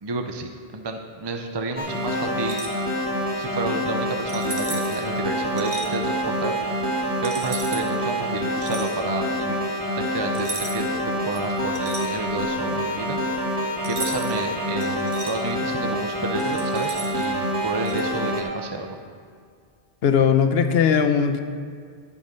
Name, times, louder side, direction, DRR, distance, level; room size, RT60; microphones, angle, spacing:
voice 1, 0.0-2.6 3.4-6.6 7.2-9.6 9.9-13.2 13.8-19.0, right 2 dB, 30° right, 4 dB, 0.6 m, -31 dB
sound 1, 1.8-18.4, equal, 10° right, 2.1 m, -27 dB
sound 2, 2.4-2.8 4.3-5.0 5.6-5.9 7.2-7.9 8.6-8.9 10.3-11.0 11.3-12.5 13.8-14.4 14.8-15.3 16.4-17.3 17.9-18.0, right 3 dB, 80° right, 1.5 m, -35 dB
Brass instrument, 4.7-9.1, right 5 dB, 55° right, 2.5 m, -44 dB
voice 2, 20.0-21.4, left 7 dB, 75° left, 9 dB, 0.9 m, -19 dB
11.0 x 8.4 x 5.4 m, 2.1 s
omnidirectional pair, 1.1 m